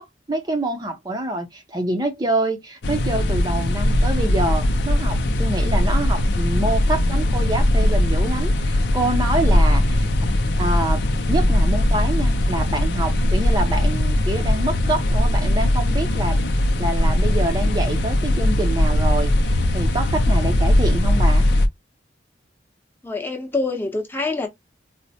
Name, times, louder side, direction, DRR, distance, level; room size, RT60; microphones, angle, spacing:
voice 1, 0.0-10.1 10.6-16.4 16.8-21.5, right 1 dB, 20° right, 0.5 m, -26 dB
sound 1, 2.8-21.7, left 1 dB, 70° left, 0.5 m, -19 dB
voice 2, 23.0-24.5, left 3 dB, 10° left, 0.7 m, -26 dB
4.2 x 2.1 x 2.7 m
head